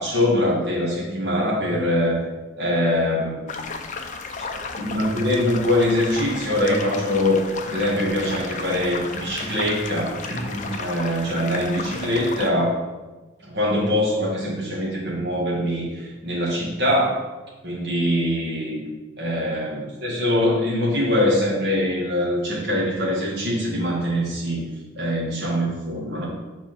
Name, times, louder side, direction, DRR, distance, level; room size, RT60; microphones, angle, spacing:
voice 1, 0.0-2.2 2.6-3.5 4.8-12.8 13.4-17.3 17.6-18.8 19.2-24.7 24.9-26.3, left 1 dB, 55° right, -5 dB, 2.0 m, -23 dB
sound 1, 3.5-12.5, left 4 dB, 35° left, 0.6 m, -34 dB
6.9 x 4.4 x 5.9 m, 1.2 s
head